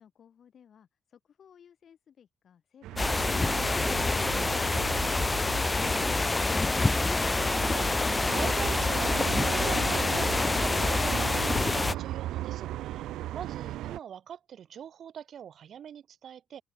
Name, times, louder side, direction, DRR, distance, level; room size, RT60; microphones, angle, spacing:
voice 1, 0.0-6.7 12.9-13.3, left 8 dB, 55° left, 4.3 m, -58 dB
sound 1, 2.8-14.0, right 14 dB, 90° right, 0.8 m, -37 dB
sound 2, 3.0-12.0, left 3 dB, 20° left, 0.6 m, -27 dB
voice 2, 7.6-13.0 13.3-16.6, right 9 dB, 60° right, 1.6 m, -43 dB
cardioid pair, 90°, 0 cm